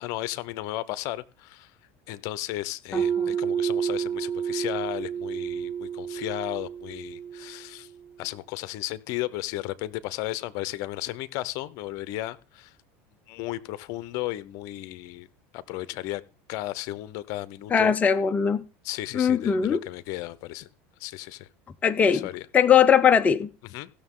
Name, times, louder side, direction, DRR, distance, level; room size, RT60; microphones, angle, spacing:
voice 1, 0.0-1.7 2.1-7.9 8.2-12.7 13.3-15.3 15.5-16.2 16.5-17.9 18.8-20.7 21.0-21.5 22.1-22.5 23.6-23.9, left 16 dB, 60° left, 0.8 m, -34 dB
voice 2, 2.9-3.3 17.7-18.6 19.1-19.8 21.8-22.2 22.5-23.5, left 7 dB, 25° left, 0.6 m, -20 dB
sound 1, 2.9-7.7, right 8 dB, 20° right, 0.5 m, -30 dB
17.5 x 6.7 x 3.8 m
supercardioid pair, 115°, 6 cm